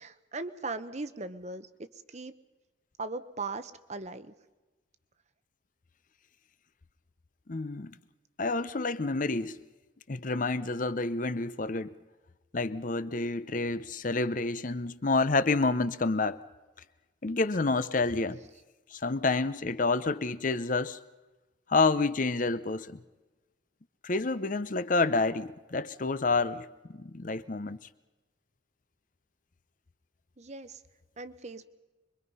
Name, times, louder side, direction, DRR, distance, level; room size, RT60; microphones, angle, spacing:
voice 1, 0.0-1.7 2.1-2.3 3.0-4.3 30.4-30.8 31.2-31.7, right 3 dB, 35° right, 0.9 m, -38 dB
voice 2, 7.5-7.9 8.4-9.6 10.1-12.0 12.5-16.4 17.2-18.4 18.9-21.0 21.7-23.0 24.0-27.8, left 3 dB, 40° left, 0.7 m, -29 dB
25.5 x 23.0 x 5.5 m
head